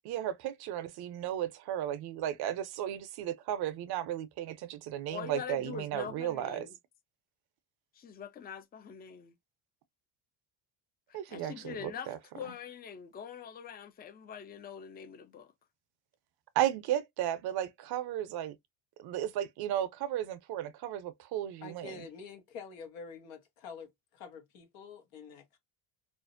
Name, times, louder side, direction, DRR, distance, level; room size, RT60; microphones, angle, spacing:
voice 1, 0.0-6.7 11.1-12.2 12.4-12.5 16.6-18.6 19.0-22.0, right 11 dB, 55° right, 0.5 m, -34 dB
voice 2, 5.1-6.7 7.9-9.3 11.1-15.5, left 8 dB, 25° left, 0.4 m, -44 dB
voice 3, 21.6-25.6, left 5 dB, 85° left, 1.0 m, -47 dB
2.4 x 2.0 x 2.5 m
cardioid pair, 100°, 45 cm